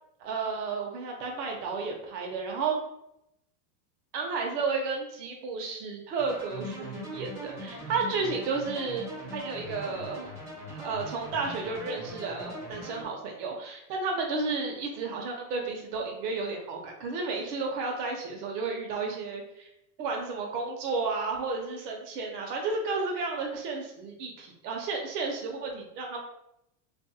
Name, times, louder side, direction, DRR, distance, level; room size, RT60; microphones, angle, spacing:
voice 1, 0.2-2.7 4.1-9.1 9.3-10.3 10.7-19.7 20.0-26.2, right 4 dB, 70° right, 1 dB, 0.9 m, -32 dB
sound 1, 6.2-13.0, equal, 5° right, 0.3 m, -41 dB
2.7 x 2.6 x 2.7 m, 0.79 s
supercardioid pair, 140°, 48 cm